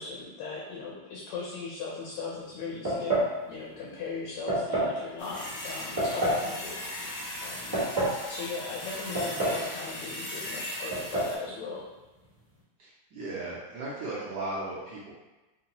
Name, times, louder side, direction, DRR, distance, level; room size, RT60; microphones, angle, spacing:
voice 1, 0.0-3.2 3.5-6.8 7.1-7.7 8.3-11.9, left 4 dB, 85° left, -4 dB, 1.6 m, -38 dB
sound 1, 2.8-3.3 4.5-4.9 6.0-6.4 7.5-8.2 9.1-9.7 9.9-10.0 10.9-11.3, right 1 dB, 15° right, 1.0 m, -27 dB
sound 2, 5.2-11.4, left 1 dB, 60° left, 0.9 m, -38 dB
voice 2, 12.8-15.1, right 2 dB, 65° right, -6 dB, 1.1 m, -36 dB
3.7 x 2.7 x 2.9 m, 1.1 s
omnidirectional pair, 2.4 m